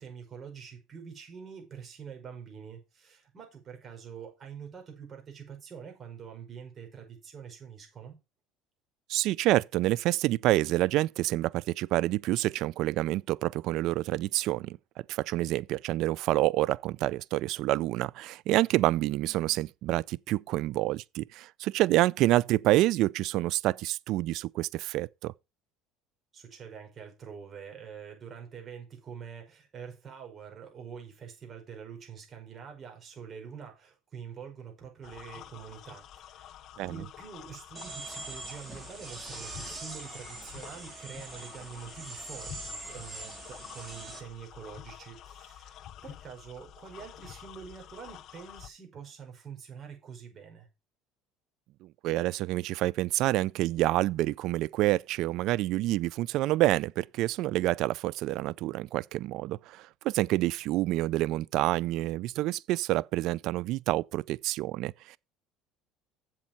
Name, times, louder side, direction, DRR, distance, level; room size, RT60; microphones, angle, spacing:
voice 1, 0.0-8.2 26.3-50.7, right 7 dB, 35° right, 5.4 m, -46 dB
voice 2, 9.1-14.8 15.1-25.3 36.8-37.0 51.8-65.2, right 16 dB, 65° right, 0.4 m, -28 dB
sound 1, 35.0-48.7, left 11 dB, 55° left, 0.6 m, -48 dB
sound 2, 37.7-44.2, right 2 dB, 15° right, 3.4 m, -43 dB
7.6 x 7.5 x 5.2 m
supercardioid pair, 115°, 0 cm